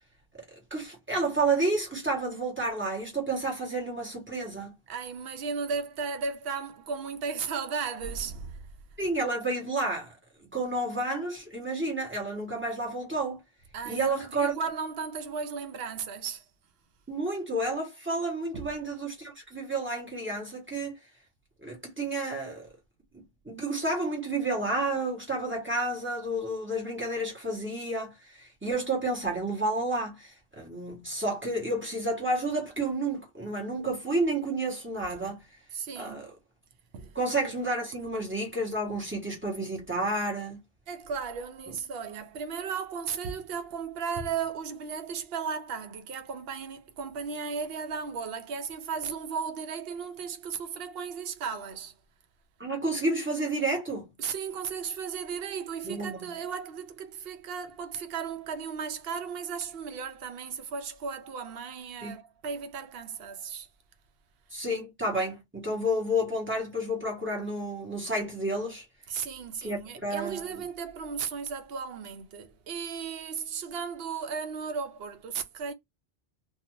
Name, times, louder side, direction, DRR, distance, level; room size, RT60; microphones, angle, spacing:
voice 1, 0.7-4.7 9.0-10.1 10.5-13.4 13.8-14.6 17.1-21.0 21.6-22.7 23.1-35.4 35.9-36.3 37.1-40.6 52.6-54.1 55.8-56.4 62.0-62.2 64.5-68.8 69.6-70.6, right 2 dB, 10° right, 1.0 m, -30 dB
voice 2, 4.9-8.7 13.7-16.4 18.5-18.6 35.7-36.3 36.9-37.2 40.9-51.9 54.2-63.7 69.1-75.7, right 6 dB, 75° right, 0.8 m, -35 dB
2.5 x 2.4 x 2.9 m
omnidirectional pair, 1.0 m